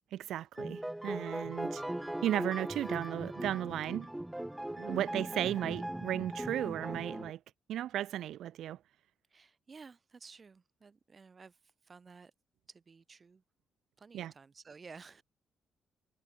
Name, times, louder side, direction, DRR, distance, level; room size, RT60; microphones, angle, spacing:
voice 1, 0.1-1.8 2.2-4.1 4.8-7.4 7.7-8.8 14.1-14.3, right 12 dB, 75° right, 1.1 m, -35 dB
sound 1, 0.6-7.3, right 1 dB, 5° right, 0.4 m, -39 dB
voice 2, 9.3-11.6 11.8-12.3 12.7-13.4 14.0-15.2, right 5 dB, 35° right, 2.2 m, -54 dB
cardioid pair, 90°, 0 cm